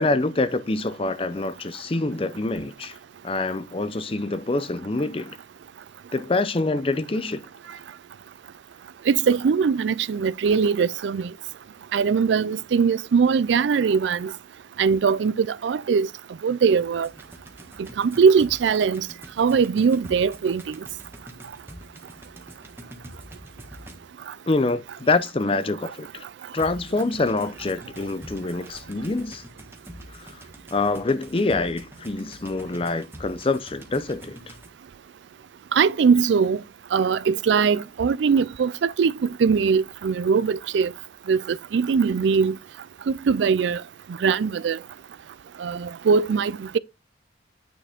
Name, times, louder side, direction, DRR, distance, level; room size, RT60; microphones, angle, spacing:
voice 1, 0.0-3.0 3.2-5.4 6.1-7.5 24.5-26.2 26.5-29.4 30.2-30.4 30.7-34.5, left 3 dB, 30° left, 0.5 m, -26 dB
voice 2, 9.1-11.3 11.9-14.3 14.8-16.1 16.4-17.1 18.0-19.1 19.4-20.8 35.7-36.6 36.9-39.1 39.4-40.9 41.3-42.6 43.1-43.8 44.2-44.8 45.6-46.8, right 6 dB, 75° right, 0.4 m, -21 dB
sound 1, 17.0-24.3 26.6-34.7, equal, 15° right, 1.4 m, -45 dB
9.2 x 4.8 x 3.5 m
head